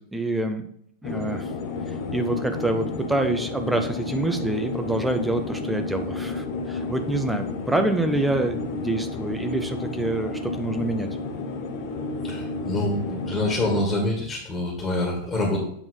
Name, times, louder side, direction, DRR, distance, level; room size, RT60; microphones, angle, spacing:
voice 1, 0.1-0.7 1.0-1.5 2.1-11.1, right 2 dB, 5° right, 6 dB, 0.8 m, -26 dB
sound 1, 1.0-13.8, left 3 dB, 45° left, 0.8 m, -31 dB
voice 2, 12.2-15.6, left 1 dB, 15° left, -1 dB, 1.8 m, -26 dB
8.3 x 3.5 x 5.2 m, 0.67 s
figure-of-eight pair, 90°, 0 cm